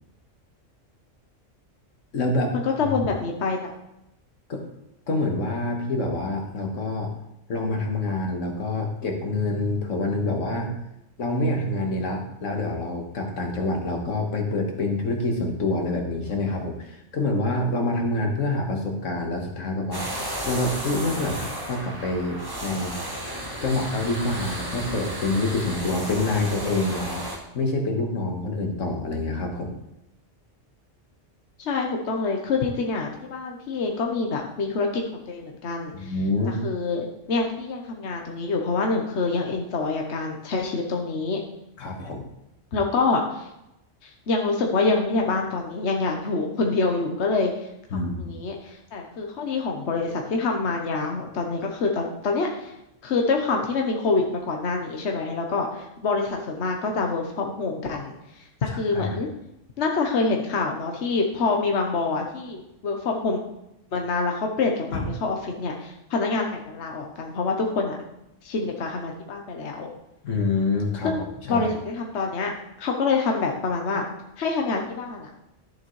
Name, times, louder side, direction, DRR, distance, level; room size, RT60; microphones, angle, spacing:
voice 1, 2.1-2.5 2.9-3.0 4.5-4.6 5.1-7.1 7.5-10.8 11.2-23.0 23.6-27.2 27.5-29.8 35.9-36.6 41.8-42.2 47.9-48.4 58.7-59.2 64.9-65.1 70.2-71.7, left 2 dB, 90° left, 2 dB, 1.7 m, -27 dB
voice 2, 2.8-3.7 31.6-36.1 36.6-41.4 42.7-43.5 44.0-47.7 48.2-52.7 53.0-59.3 59.8-63.4 63.9-68.0 68.4-69.9 71.0-72.5 72.8-74.1 74.4-75.3, left 3 dB, 65° left, 1 dB, 1.2 m, -26 dB
sound 1, 19.9-27.4, equal, 20° right, 1.7 m, -33 dB
11.0 x 7.2 x 3.2 m, 0.85 s
omnidirectional pair, 1.3 m